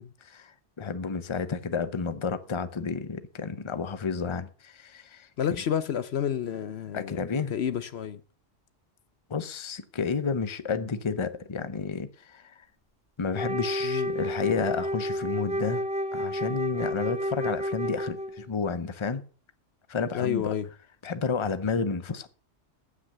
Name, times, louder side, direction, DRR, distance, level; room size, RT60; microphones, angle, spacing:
voice 1, 0.2-5.3 6.9-7.5 9.3-12.5 13.2-15.8 16.1-19.2 19.9-20.5 21.0-22.3, left 5 dB, 30° left, 0.8 m, -31 dB
voice 2, 5.4-7.2 7.5-8.2 13.8-14.1 20.1-20.7, left 9 dB, 65° left, 0.9 m, -30 dB
Wind instrument woodwind instrument, 13.3-18.5, equal, 10° right, 0.5 m, -31 dB
15.5 x 6.2 x 6.7 m
omnidirectional pair, 1.2 m